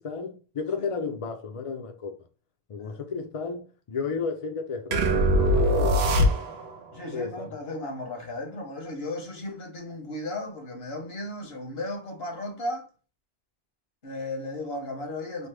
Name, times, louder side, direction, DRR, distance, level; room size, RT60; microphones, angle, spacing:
voice 1, 0.0-2.2 2.7-6.4 7.1-7.5, left 5 dB, 45° left, 0.5 m, -33 dB
sound 1, 4.9-6.8, equal, 90° right, 0.9 m, -22 dB
voice 2, 6.9-12.9 14.0-15.5, left 1 dB, 75° left, 1.3 m, -35 dB
3.4 x 2.0 x 3.2 m
omnidirectional pair, 1.0 m